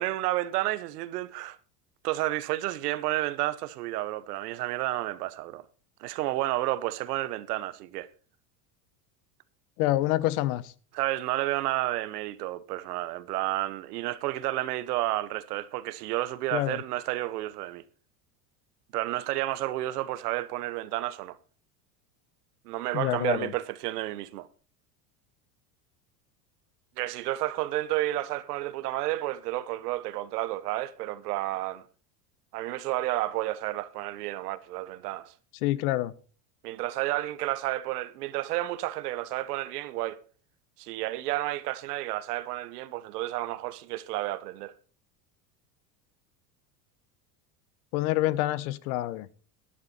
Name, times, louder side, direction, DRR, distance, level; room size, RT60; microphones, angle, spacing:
voice 1, 0.0-1.6 2.0-5.6 6.0-8.1 10.9-17.8 18.9-21.4 22.6-24.5 27.0-31.9 32.5-35.3 36.6-40.2 40.8-44.7, right 16 dB, 80° right, 1.1 m, -31 dB
voice 2, 9.8-10.7 16.5-16.8 22.9-23.5 35.6-36.1 47.9-49.3, left 16 dB, 70° left, 1.1 m, -27 dB
12.0 x 11.5 x 4.3 m
supercardioid pair, 105°, 46 cm